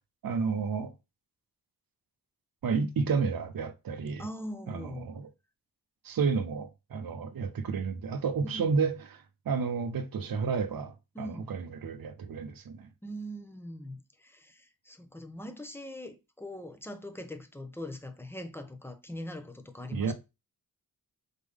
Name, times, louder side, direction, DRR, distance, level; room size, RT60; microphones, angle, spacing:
voice 1, 0.2-0.9 2.6-4.3 4.7-5.3 6.0-12.9 19.9-20.1, right 5 dB, 65° right, 0.7 m, -31 dB
voice 2, 4.2-5.1 8.4-8.8 11.1-11.5 13.0-20.1, left 1 dB, 5° left, 0.8 m, -42 dB
4.1 x 3.6 x 3.4 m
cardioid pair, 65°, 38 cm